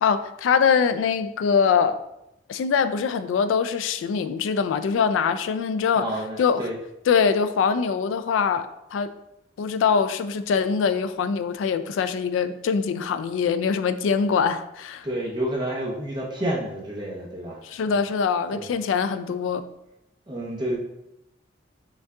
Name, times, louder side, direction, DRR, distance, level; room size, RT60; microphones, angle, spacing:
voice 1, 0.0-2.0 2.5-6.1 6.4-6.7 7.1-9.1 9.6-15.1 17.6-19.6, left 6 dB, 85° left, 11 dB, 0.3 m, -23 dB
voice 2, 5.9-6.8 15.0-18.0 18.5-18.7 20.3-20.8, right 1 dB, 25° right, -2 dB, 0.8 m, -30 dB
5.3 x 2.3 x 3.6 m, 0.86 s
head